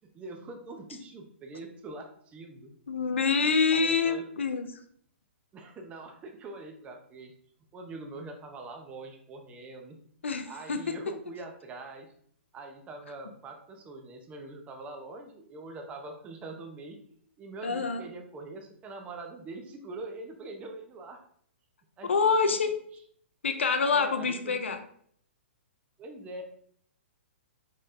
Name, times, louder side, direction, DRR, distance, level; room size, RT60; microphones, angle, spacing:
voice 1, 0.1-2.7 3.3-4.3 5.5-7.3 7.7-10.0 10.5-12.1 12.5-17.0 17.4-21.2 22.0-22.1 22.4-22.6 23.9-24.6 26.0-26.4, right 3 dB, 20° right, 4 dB, 0.6 m, -43 dB
voice 2, 2.9-4.7 10.2-11.0 17.6-18.0 22.0-22.7 23.4-24.8, left 5 dB, 70° left, 8 dB, 0.6 m, -26 dB
4.8 x 4.1 x 2.6 m, 0.62 s
figure-of-eight pair, 120°, 7 cm